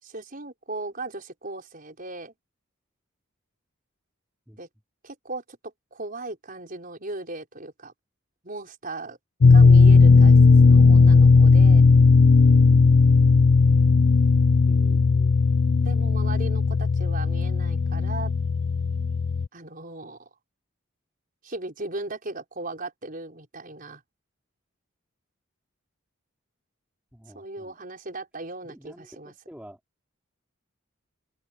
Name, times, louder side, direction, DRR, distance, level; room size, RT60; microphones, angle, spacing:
voice 1, 0.0-2.3 4.6-4.7 5.0-7.9 8.4-9.2 9.5-10.4 10.7-11.8 14.8-15.0 15.8-18.3 19.5-20.3 21.4-24.0 27.3-29.3, right 2 dB, 45° right, 5.6 m, -37 dB
sound 1, 9.4-19.5, left 4 dB, 65° left, 0.5 m, -16 dB
voice 2, 14.7-15.6 27.1-27.7 28.6-29.8, equal, 5° right, 3.4 m, -48 dB
open air
head